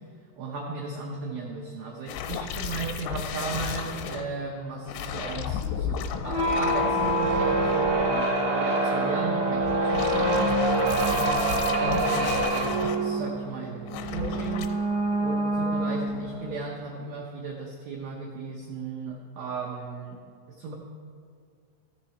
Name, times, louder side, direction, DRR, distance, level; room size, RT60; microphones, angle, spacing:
voice 1, 0.4-10.8 11.1-14.7 15.2-20.2 20.6-20.7, right 4 dB, 80° right, -3 dB, 2.1 m, -36 dB
sound 1, 2.1-4.2 4.9-8.3 9.6-13.0 13.9-14.7, left 8 dB, 80° left, 2.9 m, -33 dB
sound 2, 6.2-16.6, right 2 dB, 60° right, 1.3 m, -26 dB
14.0 x 6.8 x 4.2 m, 2.2 s
omnidirectional pair, 5.4 m